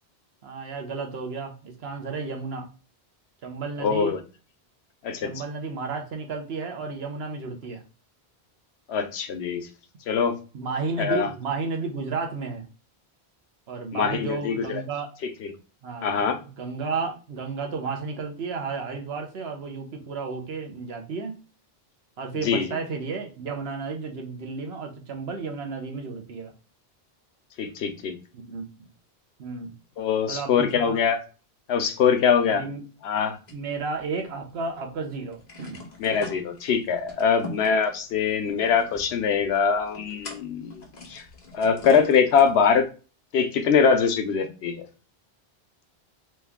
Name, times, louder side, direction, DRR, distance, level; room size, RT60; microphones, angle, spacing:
voice 1, 0.4-2.7 3.4-4.2 5.2-7.8 10.5-12.6 13.7-15.1 15.8-21.3 22.2-26.5 28.3-28.9 29.4-29.7 30.3-31.0 32.5-32.9 33.5-35.8, right 4 dB, 75° right, 3 dB, 1.1 m, -32 dB
voice 2, 3.8-4.2 5.0-5.3 8.9-9.7 10.1-10.3 11.0-11.3 13.9-14.8 16.0-16.4 22.3-22.7 27.6-28.1 30.0-31.2 31.7-32.6 33.0-33.4 36.0-40.8 41.1-41.2 41.5-42.9 43.3-44.8, left 6 dB, 80° left, 8 dB, 0.9 m, -23 dB
sound 1, 33.5-34.6 34.9-35.0 35.3-42.8, left 3 dB, 45° left, 1.0 m, -43 dB
3.2 x 3.1 x 3.5 m, 0.34 s
omnidirectional pair, 1.1 m